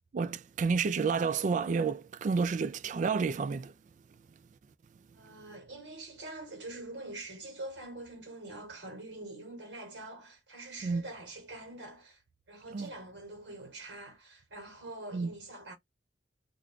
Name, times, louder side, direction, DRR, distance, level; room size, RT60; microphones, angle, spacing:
voice 1, 0.1-3.7 10.8-11.0 12.7-12.9 15.1-15.3, right 5 dB, 45° right, 0.3 m, -30 dB
voice 2, 5.1-12.2 12.5-15.7, right 2 dB, 80° right, 1.3 m, -45 dB
2.5 x 2.3 x 3.6 m
head